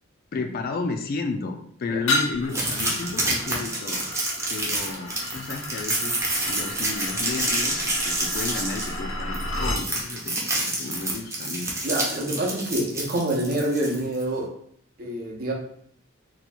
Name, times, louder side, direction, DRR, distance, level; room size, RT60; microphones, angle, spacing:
voice 1, 0.3-4.1 4.5-11.7, left 3 dB, 45° left, 6 dB, 0.3 m, -32 dB
sound 1, 2.1-9.9, left 1 dB, 65° left, 0.7 m, -32 dB
sound 2, 2.5-14.2, right 2 dB, 15° right, 0.7 m, -28 dB
voice 2, 11.8-14.5 15.0-15.5, right 1 dB, 45° right, -1 dB, 0.7 m, -26 dB
2.8 x 2.3 x 4.2 m, 0.65 s
head